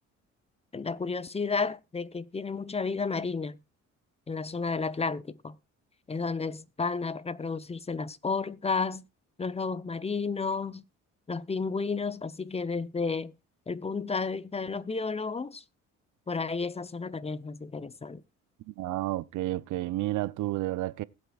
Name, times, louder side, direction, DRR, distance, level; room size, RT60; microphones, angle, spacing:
voice 1, 0.7-3.6 4.3-5.6 6.1-9.0 9.4-10.8 11.3-13.3 13.7-15.6 16.3-18.2, left 4 dB, 20° left, 0.7 m, -32 dB
voice 2, 18.7-21.0, right 16 dB, 80° right, 0.6 m, -31 dB
20.5 x 8.0 x 2.4 m
cardioid pair, 90°, 30 cm